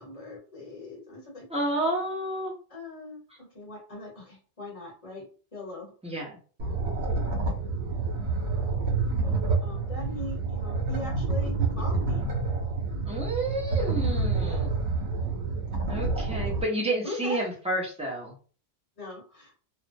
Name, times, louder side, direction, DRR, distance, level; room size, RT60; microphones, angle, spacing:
voice 1, 0.0-1.4 2.7-3.2 3.5-5.2 5.5-5.9 9.2-12.3 14.4-14.7 16.3-16.5 17.0-17.4 19.0-19.5, left 1 dB, 35° left, -2 dB, 0.9 m, -40 dB
voice 2, 1.5-2.5 6.0-6.4 13.0-14.7 15.9-18.3, right 1 dB, 10° right, -2 dB, 0.4 m, -30 dB
sound 1, 6.6-16.6, right 3 dB, 90° right, 1.0 m, -28 dB
2.4 x 2.0 x 2.5 m, 0.40 s
omnidirectional pair, 1.1 m